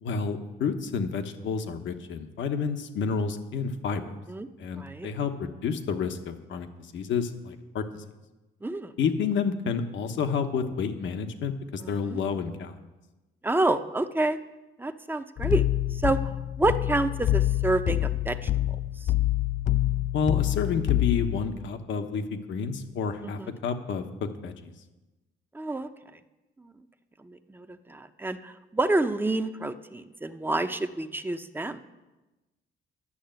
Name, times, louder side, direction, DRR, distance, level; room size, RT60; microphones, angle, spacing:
voice 1, 0.0-4.1 4.6-6.7 6.9-8.0 9.0-12.8 20.1-24.7, left 5 dB, 70° left, 7 dB, 1.2 m, -30 dB
voice 2, 4.7-5.1 8.6-9.0 11.8-12.2 13.4-14.4 14.8-15.6 15.9-16.2 16.6-18.5 23.4-23.5 25.5-25.9 26.6-26.7 27.2-31.8, right 2 dB, 10° right, 9 dB, 0.7 m, -28 dB
sound 1, 15.4-21.5, left 14 dB, 40° left, 0.4 m, -26 dB
11.5 x 6.6 x 9.0 m, 1.1 s
cardioid pair, 90°, 20 cm